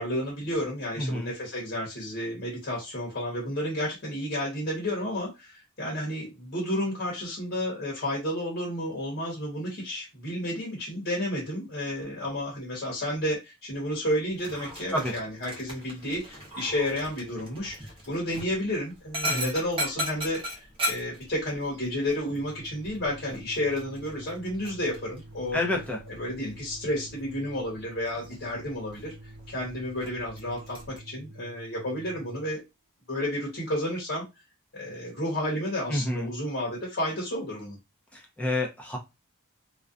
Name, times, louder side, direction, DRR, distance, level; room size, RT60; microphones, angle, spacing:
voice 1, 0.0-25.6 26.1-29.1 29.5-32.6 33.1-34.2 34.7-37.8, left 1 dB, 50° left, -3 dB, 1.0 m, -31 dB
voice 2, 1.0-1.3 14.9-15.1 19.2-19.5 25.5-26.0 35.9-36.3 38.1-39.0, left 1 dB, 5° left, 0 dB, 0.5 m, -29 dB
Dog, 14.3-31.0, equal, 25° right, 0.8 m, -39 dB
Organ, 22.2-32.5, right 1 dB, 80° right, 0.6 m, -48 dB
2.5 x 2.1 x 2.4 m, 0.23 s
head